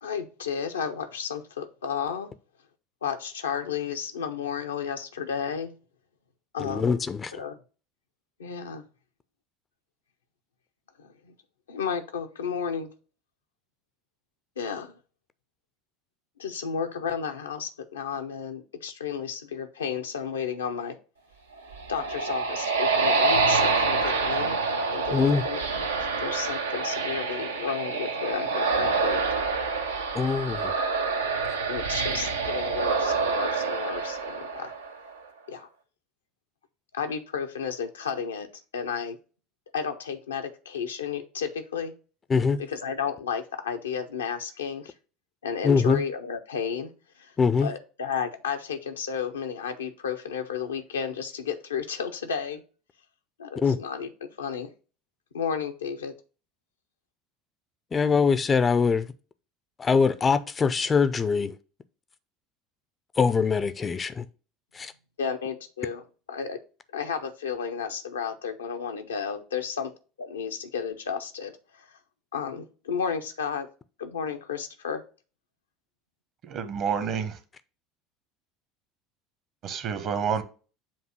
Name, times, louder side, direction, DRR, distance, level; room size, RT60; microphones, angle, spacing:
voice 1, 0.0-2.3 3.0-5.7 6.5-7.0 7.3-7.6 8.4-8.8 11.0-11.3 11.7-12.9 14.6-14.9 16.4-21.0 21.9-29.2 30.5-30.7 31.7-34.7 35.5-35.7 36.9-38.5 38.7-39.2 39.7-41.9 42.7-44.9 45.4-46.9 47.2-47.3 47.6-52.6 53.4-54.7 55.3-56.1 65.2-66.0 66.3-66.6 66.9-69.9 70.2-71.9 72.3-73.7 74.0-75.0, left 6 dB, 75° left, 0.7 m, -32 dB
voice 2, 6.6-7.4 25.1-25.4 30.1-30.7 42.3-42.6 45.6-46.0 47.4-47.7 53.6-53.8 57.9-59.1 59.8-61.6 63.2-64.3 64.7-64.9, left 5 dB, 25° left, 0.5 m, -23 dB
sound 1, 21.5-35.1, right 4 dB, 75° right, 0.7 m, -27 dB
voice 3, 76.5-77.3 79.6-80.4, right 7 dB, 45° right, 1.0 m, -28 dB
7.4 x 2.7 x 5.8 m
figure-of-eight pair, 70°, 0 cm